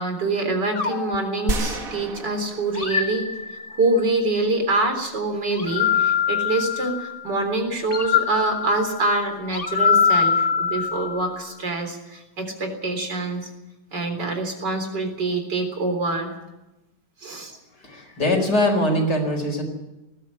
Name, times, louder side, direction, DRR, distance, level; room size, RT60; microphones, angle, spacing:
voice 1, 0.0-3.3 3.8-13.5 13.9-16.4 17.2-17.6, right 2 dB, 70° right, 5 dB, 4.4 m, -25 dB
sound 1, 0.8-2.1 2.8-4.0 5.5-7.2 7.9-11.4, left 7 dB, 35° left, 1.3 m, -24 dB
sound 2, 1.5-3.8, right 3 dB, 50° right, 1.9 m, -31 dB
voice 2, 17.7-19.6, left 1 dB, 65° left, 3 dB, 5.3 m, -22 dB
19.5 x 14.5 x 9.8 m, 1.0 s
omnidirectional pair, 1.9 m